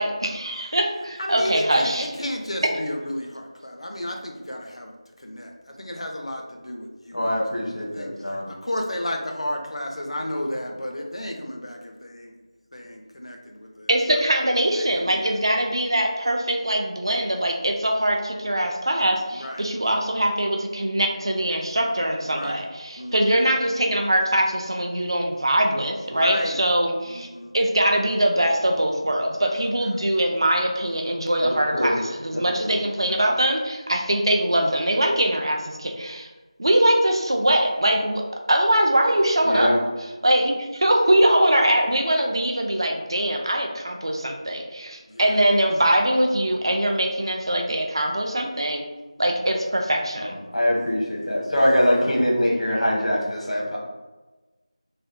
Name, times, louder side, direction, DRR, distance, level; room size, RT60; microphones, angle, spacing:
voice 1, 0.0-2.1 13.9-27.3 27.5-36.3 36.6-38.2 38.5-48.8 49.2-50.4, right 1 dB, 45° right, 3 dB, 0.3 m, -22 dB
voice 2, 1.2-4.9 5.2-7.2 7.8-8.1 8.5-12.3 12.7-14.2 14.8-15.1 19.3-19.7 22.3-22.7 23.0-23.5 26.1-26.5 27.1-27.5 29.6-29.7 45.1-45.4 51.6-52.1, left 1 dB, 60° left, 2 dB, 0.5 m, -33 dB
voice 3, 7.1-8.4 31.4-32.0 32.3-32.8 39.5-39.8 50.2-53.8, equal, 80° left, -3 dB, 1.0 m, -23 dB
3.2 x 2.2 x 2.6 m, 1.2 s
figure-of-eight pair, 175°, 3 cm